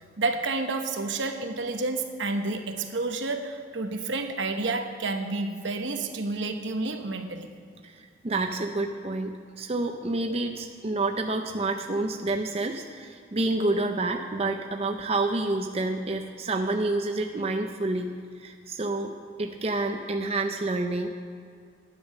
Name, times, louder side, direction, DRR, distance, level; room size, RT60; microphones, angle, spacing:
voice 1, 0.0-7.5, right 3 dB, 75° right, 6 dB, 1.0 m, -30 dB
voice 2, 7.8-21.1, right 2 dB, 30° right, 4 dB, 0.5 m, -29 dB
10.5 x 10.0 x 6.4 m, 2.2 s
head